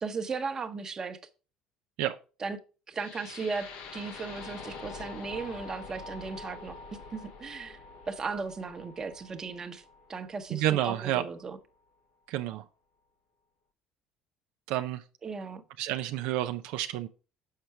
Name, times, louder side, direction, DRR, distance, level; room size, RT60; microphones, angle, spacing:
voice 1, 0.0-1.2 2.4-2.6 2.9-3.7 3.9-7.8 8.1-9.8 10.1-11.6 15.2-15.6, right 4 dB, 30° right, 0.9 m, -36 dB
sound 1, 3.0-11.0, left 4 dB, 75° left, 1.0 m, -45 dB
voice 2, 10.5-11.2 12.3-12.6 14.7-15.0 15.8-17.1, right 13 dB, 75° right, 0.4 m, -29 dB
6.6 x 4.5 x 4.7 m
supercardioid pair, 95°, 2 cm